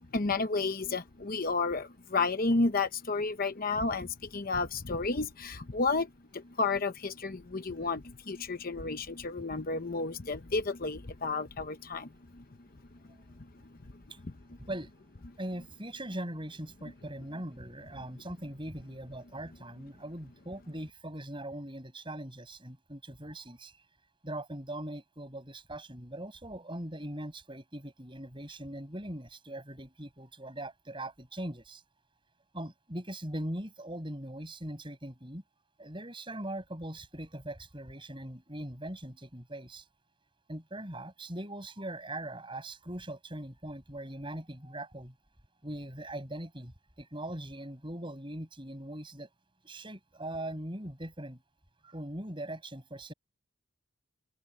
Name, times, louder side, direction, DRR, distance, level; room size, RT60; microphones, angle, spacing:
voice 1, 0.1-12.4 14.2-14.3, left 3 dB, 40° left, 0.9 m, -32 dB
voice 2, 15.4-23.7 24.2-31.8 32.5-35.4 35.8-39.8 40.5-45.1 45.6-49.3 49.6-51.4 51.8-53.1, right 1 dB, 25° right, 7.7 m, -41 dB
open air
head